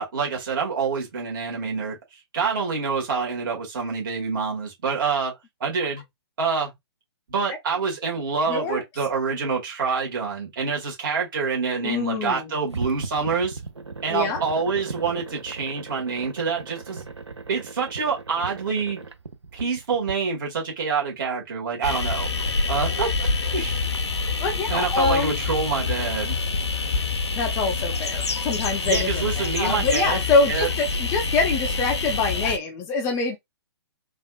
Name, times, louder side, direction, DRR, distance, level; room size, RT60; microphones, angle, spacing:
voice 1, 0.0-2.0 2.3-5.3 5.6-6.0 6.4-6.7 7.3-13.6 14.0-17.0 17.5-19.0 19.5-22.3 22.7-23.3 23.5-23.8 24.7-26.4 28.9-30.7, right 5 dB, 50° right, 1.5 m, -26 dB
voice 2, 8.5-8.8 11.8-12.5 14.1-14.4 24.4-25.4 27.3-33.4, left 3 dB, 20° left, 0.4 m, -25 dB
sound 1, 12.7-20.1, right 4 dB, 85° right, 0.5 m, -37 dB
sound 2, 21.8-32.6, left 4 dB, 75° left, 0.5 m, -26 dB
3.3 x 2.3 x 2.3 m
figure-of-eight pair, 125°, 14 cm